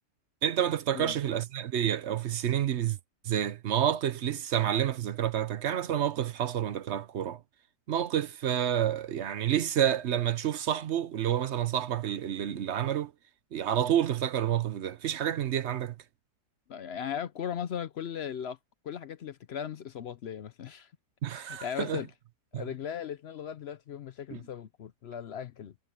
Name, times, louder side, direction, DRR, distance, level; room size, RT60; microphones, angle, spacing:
voice 1, 0.4-3.0 3.2-7.4 7.9-13.1 13.5-16.0 21.2-22.0 22.5-22.6 24.3-24.4, right 10 dB, 55° right, 0.8 m, -29 dB
voice 2, 16.7-18.6 18.8-20.9 21.3-22.1 22.5-25.7, left 8 dB, 65° left, 0.6 m, -37 dB
omnidirectional pair, 1.8 m